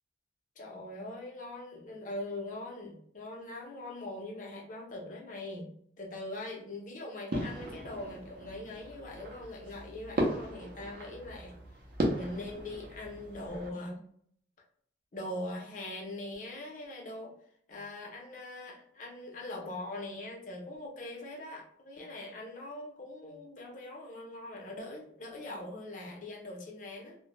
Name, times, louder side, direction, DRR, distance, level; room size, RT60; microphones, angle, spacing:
voice 1, 0.6-5.7 6.0-11.5 12.1-14.0 15.1-17.3 17.7-27.2, left 1 dB, 45° left, 0 dB, 0.6 m, -42 dB
sound 1, 7.3-13.7, right 1 dB, 50° right, 0.5 m, -37 dB
2.1 x 2.1 x 2.9 m, 0.63 s
head